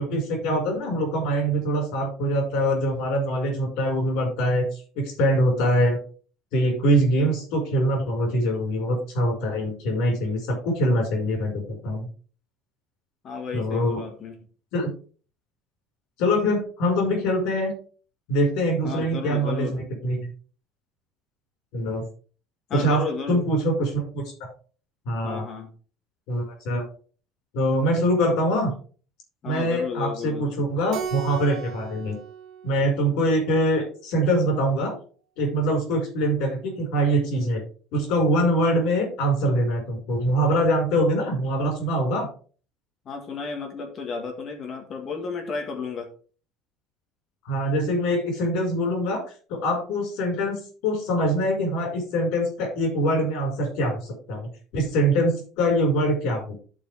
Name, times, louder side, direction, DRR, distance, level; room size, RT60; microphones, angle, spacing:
voice 1, 0.0-6.0 6.5-12.1 13.5-14.0 14.7-14.9 16.2-17.7 18.3-20.2 21.7-22.0 22.7-23.0 23.3-24.2 25.0-25.4 26.3-26.8 27.5-28.7 29.4-32.2 32.6-34.9 35.4-37.6 37.9-42.3 47.4-49.2 49.5-56.5, equal, 65° left, 2 dB, 5.0 m, -24 dB
voice 2, 13.2-14.4 18.8-19.8 22.7-23.4 25.2-25.7 29.4-30.5 43.0-46.1, left 5 dB, 30° left, 4 dB, 1.7 m, -32 dB
Keyboard (musical), 30.9-33.6, right 8 dB, 55° right, 1.3 m, -37 dB
13.5 x 4.8 x 3.4 m, 0.40 s
cardioid pair, 175°, 0 cm